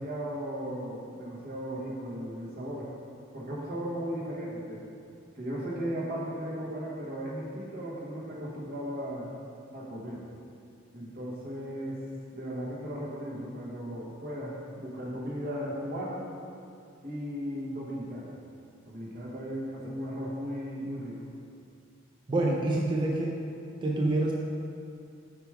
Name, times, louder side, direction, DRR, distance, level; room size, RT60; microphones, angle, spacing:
voice 1, 0.0-2.9 3.3-4.8 5.3-9.3 9.7-10.3 10.9-12.0 12.3-16.2 17.0-18.3 18.8-21.2, equal, 45° right, -5 dB, 1.2 m, -36 dB
voice 2, 22.3-23.4 23.8-24.3, right 2 dB, 25° right, -2 dB, 0.4 m, -26 dB
5.0 x 4.8 x 4.7 m, 2.5 s
head